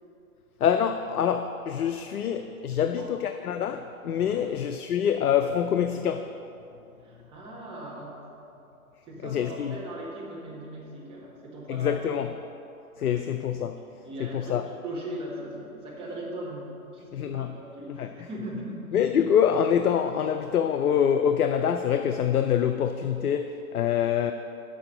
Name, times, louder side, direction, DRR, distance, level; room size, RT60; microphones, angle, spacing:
voice 1, 0.6-6.3 9.2-9.7 11.7-12.3 13.0-13.8 14.2-14.6 17.1-17.6 17.9-18.1 18.9-24.3, left 8 dB, 80° left, 7 dB, 0.6 m, -25 dB
voice 2, 7.0-8.2 9.0-12.1 13.0-13.3 14.0-18.9, right 1 dB, 10° right, -5 dB, 1.5 m, -39 dB
6.9 x 6.4 x 6.5 m, 2.8 s
hypercardioid pair, 140°, 44 cm